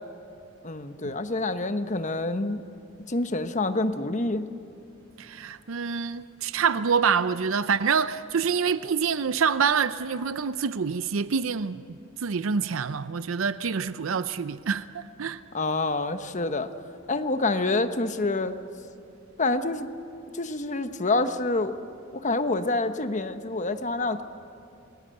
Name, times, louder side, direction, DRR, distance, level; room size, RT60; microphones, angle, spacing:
voice 1, 0.6-2.6 3.1-4.5 15.5-16.7 17.1-18.5 19.4-19.9 20.3-21.8 22.1-24.2, left 2 dB, 35° left, 1.1 m, -27 dB
voice 2, 5.2-11.8 12.2-15.4, right 6 dB, 70° right, 0.6 m, -26 dB
28.5 x 20.5 x 7.8 m
head